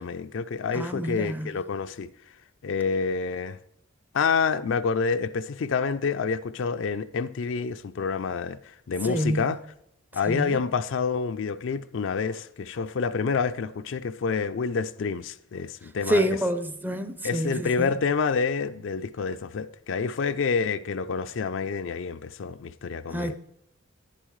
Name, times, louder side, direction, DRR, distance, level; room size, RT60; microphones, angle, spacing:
voice 1, 0.0-2.1 2.6-3.6 4.1-8.6 8.9-9.6 10.1-16.4 17.2-23.3, left 5 dB, 60° left, 0.4 m, -28 dB
voice 2, 0.7-1.5 9.0-9.4 10.3-10.6 16.1-18.0 23.1-23.3, equal, 10° right, 0.5 m, -27 dB
11.0 x 10.0 x 3.1 m
head